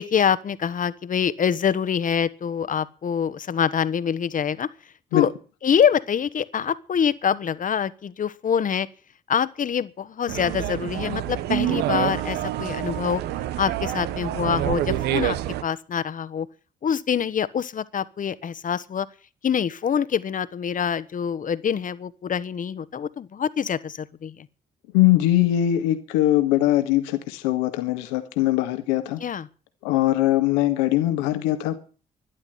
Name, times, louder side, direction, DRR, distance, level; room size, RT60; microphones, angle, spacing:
voice 1, 0.0-4.7 5.1-5.3 5.6-8.9 9.3-13.2 13.6-15.4 15.6-16.5 16.8-19.1 19.4-24.3 29.2-29.5, left 7 dB, 50° left, 1.3 m, -25 dB
sound 1, 10.3-15.6, right 13 dB, 75° right, 0.9 m, -27 dB
voice 2, 24.9-29.2 29.8-31.8, left 14 dB, 85° left, 1.8 m, -21 dB
12.5 x 11.5 x 8.0 m
hypercardioid pair, 50°, 17 cm